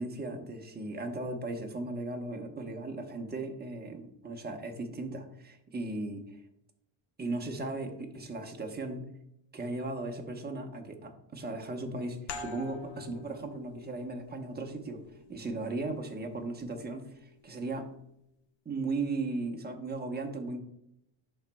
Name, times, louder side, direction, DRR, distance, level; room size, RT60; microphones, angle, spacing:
voice 1, 0.0-6.4 7.2-9.1 9.5-15.0 15.3-17.9 18.6-20.6, right 2 dB, 20° right, 3 dB, 1.0 m, -37 dB
sound 1, 12.3-17.6, left 4 dB, 60° left, 1.0 m, -47 dB
11.5 x 4.3 x 2.3 m, 0.76 s
cardioid pair, 115°, 47 cm